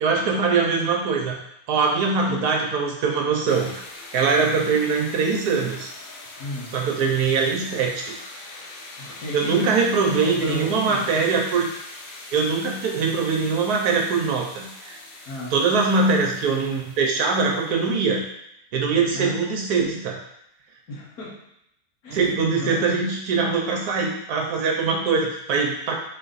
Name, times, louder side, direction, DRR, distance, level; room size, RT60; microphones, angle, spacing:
voice 1, 0.0-1.4 1.7-3.7 4.1-5.9 6.7-8.1 9.3-11.7 12.3-15.0 15.5-18.2 18.7-20.2 22.1-25.9, right 4 dB, 75° right, 1 dB, 1.2 m, -22 dB
sound 1, 3.5-18.3, left 2 dB, 90° left, 1.3 m, -42 dB
voice 2, 6.4-6.8 9.0-11.3 15.3-15.6 19.1-19.3 20.9-21.4 22.0-23.0, left 1 dB, 65° left, -6 dB, 1.8 m, -34 dB
3.8 x 3.4 x 4.0 m, 0.78 s
omnidirectional pair, 1.7 m